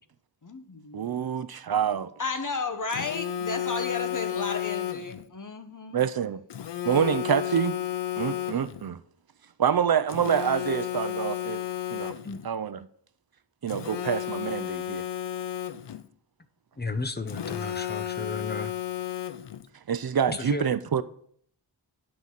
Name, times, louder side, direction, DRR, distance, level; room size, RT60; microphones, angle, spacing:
voice 1, 0.4-1.3 2.2-6.0, left 4 dB, 45° left, 1.0 m, -33 dB
voice 2, 0.9-2.1 5.9-6.4 6.8-7.8 8.2-9.0 9.6-11.6 11.9-12.2 12.4-12.8 13.6-15.0 19.9-21.0, right 8 dB, 55° right, 0.5 m, -26 dB
Telephone, 2.9-5.2 6.5-8.9 10.1-12.5 13.7-16.1 17.3-19.7, left 11 dB, 70° left, 0.5 m, -32 dB
voice 3, 16.8-18.7 20.3-20.7, left 3 dB, 25° left, 0.6 m, -33 dB
9.7 x 3.9 x 7.3 m
wide cardioid pair, 70°, 44 cm